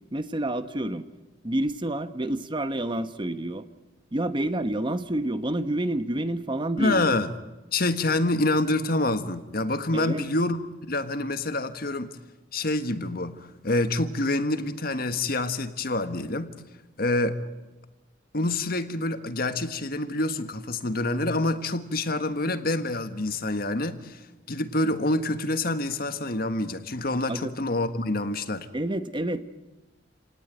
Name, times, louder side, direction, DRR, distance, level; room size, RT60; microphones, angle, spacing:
voice 1, 0.1-1.1 1.4-3.6 4.1-7.1 9.9-10.3 27.3-27.5 28.7-29.4, right 1 dB, 25° right, 11 dB, 1.0 m, -28 dB
voice 2, 6.8-7.3 7.7-10.6 10.9-12.1 12.5-13.4 13.6-16.5 17.0-17.4 18.3-24.2 24.5-28.7, left 2 dB, 55° left, 10 dB, 1.6 m, -27 dB
29.0 x 18.5 x 9.2 m, 1.1 s
head